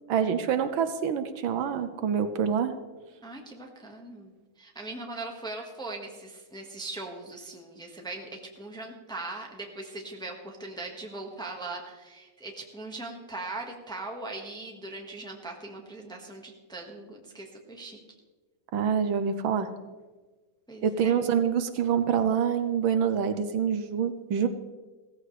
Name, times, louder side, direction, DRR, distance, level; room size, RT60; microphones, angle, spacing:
voice 1, 0.1-2.7 18.7-19.7 20.8-24.5, right 7 dB, 75° right, 10 dB, 1.5 m, -26 dB
voice 2, 3.2-18.0 20.7-21.1, right 2 dB, ahead, 1 dB, 1.2 m, -40 dB
16.5 x 14.5 x 3.3 m, 1.3 s
omnidirectional pair, 2.3 m